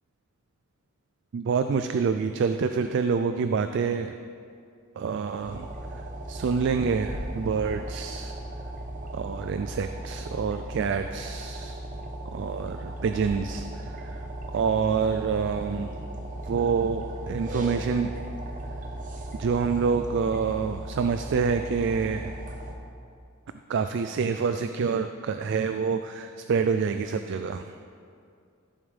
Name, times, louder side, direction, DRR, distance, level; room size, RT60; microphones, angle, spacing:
voice 1, 1.3-4.1 5.0-5.7 6.3-8.4 9.1-11.8 12.3-14.2 14.5-16.0 16.5-18.1 19.4-22.3 23.7-27.8, right 5 dB, 55° right, 8 dB, 0.3 m, -27 dB
sound 1, 5.2-22.7, right 1 dB, 40° right, 0.9 m, -37 dB
14.0 x 7.2 x 3.4 m, 2.3 s
head